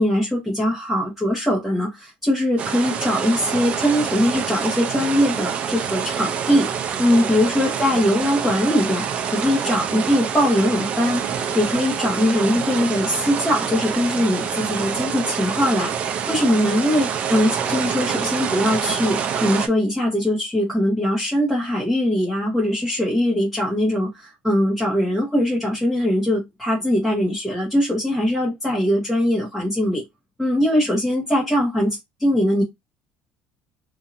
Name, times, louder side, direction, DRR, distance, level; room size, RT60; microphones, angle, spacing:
voice 1, 0.0-6.7 7.0-11.2 11.5-30.0 30.4-32.6, left 1 dB, ahead, 1.2 m, -21 dB
sound 1, 2.6-19.7, right 7 dB, 40° right, 0.5 m, -26 dB
2.7 x 2.7 x 2.5 m
cardioid pair, 150°, 3 cm